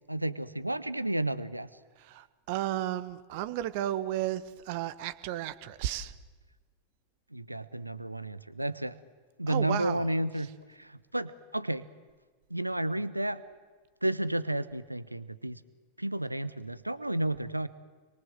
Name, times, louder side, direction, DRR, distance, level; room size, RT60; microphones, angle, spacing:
voice 1, 0.1-1.7 7.3-9.0 9.4-11.9 12.5-13.4 14.0-15.6 16.0-17.7, right 1 dB, 85° right, 16 dB, 0.9 m, -32 dB
voice 2, 2.0-6.1 9.5-10.1, right 13 dB, 50° right, 15 dB, 1.4 m, -33 dB
29.5 x 23.0 x 7.8 m, 1.4 s
figure-of-eight pair, 90°, 0 cm